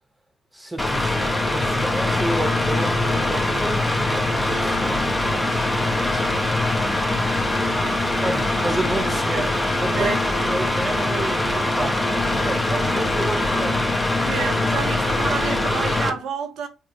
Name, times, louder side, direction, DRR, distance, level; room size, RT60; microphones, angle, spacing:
voice 1, 0.5-7.2 8.2-12.1 12.4-14.0 14.9-15.0, right 1 dB, 10° right, 0.9 m, -31 dB
Mechanical fan, 0.8-16.1, left 2 dB, 15° left, 0.7 m, -22 dB
voice 2, 9.3-9.6 10.0-10.2 14.2-16.7, right 6 dB, 65° right, 0.5 m, -29 dB
3.3 x 2.0 x 3.0 m
figure-of-eight pair, 40°, 0 cm